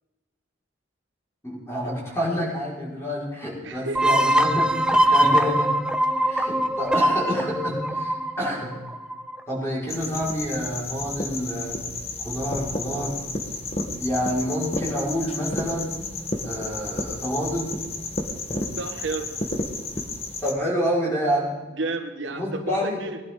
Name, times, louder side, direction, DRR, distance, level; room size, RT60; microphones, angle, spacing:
voice 1, 1.4-5.7 6.3-8.7 9.5-11.8 12.2-13.2 14.0-15.9 16.4-17.7 20.4-21.5 22.3-23.0, equal, 15° left, -6 dB, 5.0 m, -28 dB
voice 2, 3.6-4.0 18.8-19.3 21.8-23.2, right 3 dB, 80° right, 6 dB, 1.2 m, -31 dB
sound 1, 3.9-9.4, right 1 dB, 5° right, 0.6 m, -22 dB
sound 2, 9.9-20.5, left 2 dB, 35° left, 1.3 m, -32 dB
20.0 x 11.5 x 3.8 m, 1.2 s
head